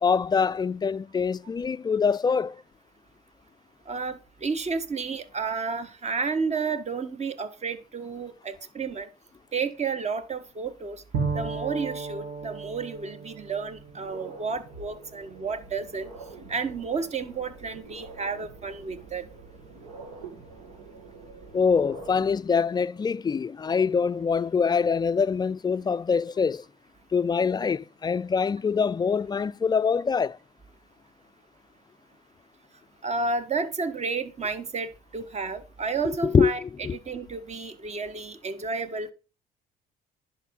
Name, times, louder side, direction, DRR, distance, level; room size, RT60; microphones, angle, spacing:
voice 1, 0.0-2.6 21.5-26.6 27.1-30.4 36.2-37.0, left 5 dB, 25° left, 0.4 m, -24 dB
voice 2, 3.9-9.1 9.5-11.0 11.3-16.1 16.5-19.3 33.0-36.6 36.9-39.1, right 4 dB, 40° right, 1.5 m, -31 dB
Bowed string instrument, 11.1-14.9, right 4 dB, 60° right, 2.4 m, -34 dB
sound 1, 13.7-22.4, right 3 dB, 80° right, 2.5 m, -46 dB
10.5 x 5.5 x 5.3 m
hypercardioid pair, 65°, 18 cm